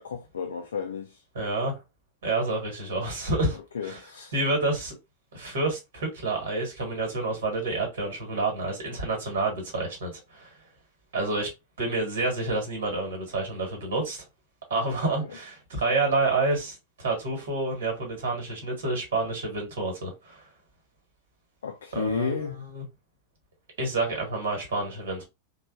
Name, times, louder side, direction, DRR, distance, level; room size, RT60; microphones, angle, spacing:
voice 1, 0.0-1.2 3.5-4.3 15.2-15.4 21.6-22.7, left 6 dB, 65° left, 0.3 m, -33 dB
voice 2, 1.3-1.8 2.2-3.6 3.8-4.0 4.3-4.9 5.3-10.5 11.1-11.5 11.8-14.2 14.7-20.4 21.9-22.4 22.7-22.8 23.8-25.2, right 2 dB, 60° right, 1.3 m, -28 dB
3.1 x 2.2 x 2.4 m
figure-of-eight pair, 90°, 0 cm